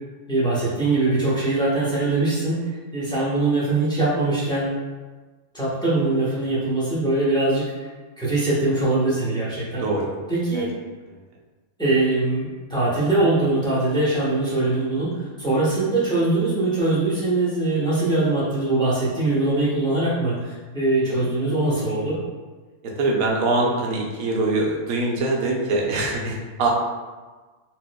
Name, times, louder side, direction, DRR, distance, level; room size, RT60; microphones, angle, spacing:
voice 1, 0.3-2.6 2.9-4.8 5.5-7.9 8.2-9.8 10.3-10.7 11.8-22.2, right 2 dB, 5° left, -9 dB, 0.8 m, -22 dB
voice 2, 9.8-10.1 10.5-10.7 21.0-21.3 22.8-26.7, right 2 dB, 80° right, -1 dB, 1.1 m, -23 dB
4.1 x 2.6 x 2.2 m, 1.3 s
omnidirectional pair, 1.5 m